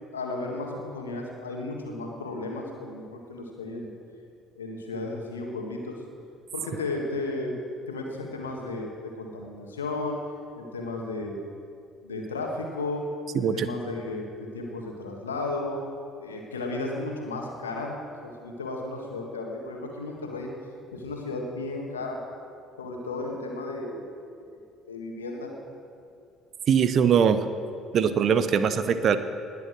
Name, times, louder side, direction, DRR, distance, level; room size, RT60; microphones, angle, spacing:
voice 1, 0.1-3.9 4.6-6.0 6.5-7.5 7.9-8.9 9.1-10.2 10.5-11.4 12.0-13.1 13.3-15.8 16.2-18.0 18.2-20.5 20.9-22.2 22.8-24.0 24.9-25.5, left 2 dB, 85° left, 1 dB, 1.6 m, -34 dB
voice 2, 13.3-13.7 26.7-27.4 27.9-29.2, right 7 dB, 50° right, 12 dB, 0.8 m, -21 dB
20.0 x 7.0 x 6.4 m, 2.4 s
figure-of-eight pair, 50°, 0 cm